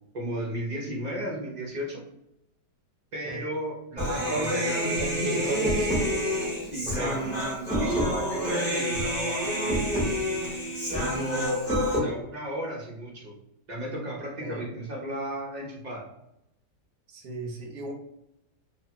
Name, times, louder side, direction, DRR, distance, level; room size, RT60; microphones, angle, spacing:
voice 1, 0.1-2.0 3.1-5.0 6.6-7.2 7.8-9.8 10.9-13.3 13.7-16.0, right 1 dB, 45° right, -4 dB, 0.6 m, -34 dB
Human voice, 4.0-12.0, equal, ahead, 1.0 m, -28 dB
voice 2, 4.1-5.9 14.4-14.8 17.1-17.9, right 1 dB, 70° right, 1 dB, 1.1 m, -34 dB
2.7 x 2.3 x 2.8 m, 0.80 s
omnidirectional pair, 1.7 m